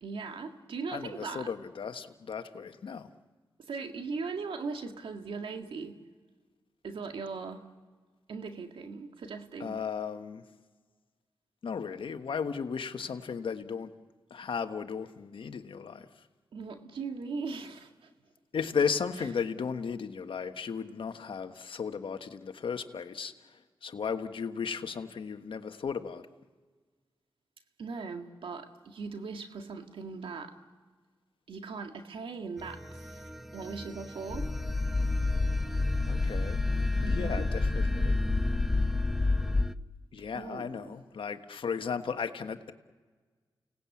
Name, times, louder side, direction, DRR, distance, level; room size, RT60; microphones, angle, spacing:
voice 1, 0.0-1.5 3.6-6.0 6.8-7.6 8.3-9.8 16.5-18.1 27.8-30.5 31.5-34.5 37.0-37.4 40.3-40.9, right 4 dB, 80° right, 5 dB, 2.0 m, -39 dB
voice 2, 0.9-3.1 9.6-10.4 11.6-13.9 14.3-16.1 18.5-26.2 36.1-36.6 36.9-38.2 40.1-42.7, left 6 dB, 75° left, 8 dB, 1.4 m, -35 dB
sound 1, 32.6-39.8, equal, 5° right, 0.8 m, -39 dB
sound 2, 34.3-39.6, left 3 dB, 40° left, 0.8 m, -28 dB
30.0 x 18.5 x 8.5 m, 1.5 s
cardioid pair, 50°, 9 cm